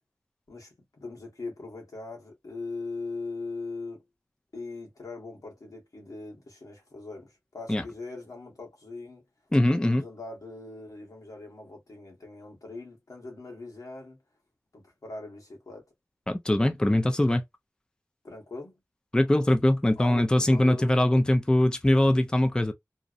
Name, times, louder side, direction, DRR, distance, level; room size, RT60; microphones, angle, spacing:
voice 1, 0.5-4.0 4.5-9.2 9.8-14.2 14.7-15.8 18.2-18.7 20.0-21.2, left 3 dB, 80° left, 1.1 m, -40 dB
voice 2, 9.5-10.0 16.3-17.4 19.1-22.7, left 1 dB, 15° left, 0.4 m, -22 dB
2.6 x 2.0 x 2.4 m
wide cardioid pair, 60°, 6 cm